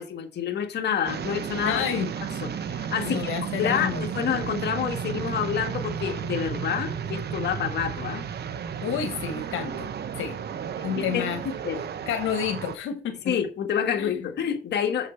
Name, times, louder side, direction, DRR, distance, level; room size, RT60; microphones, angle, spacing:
voice 1, 0.0-1.8 2.4-3.3 3.6-8.3 11.1-11.8 13.3-15.1, left 8 dB, 60° left, 1.5 m, -28 dB
sound 1, 1.1-12.8, right 7 dB, 55° right, 0.9 m, -33 dB
voice 2, 1.6-2.1 3.0-4.0 8.8-9.9 10.2-10.4 10.8-11.4 12.1-13.3 14.0-14.1, left 8 dB, 85° left, 1.2 m, -29 dB
6.9 x 6.5 x 4.4 m
cardioid pair, 90°, 20 cm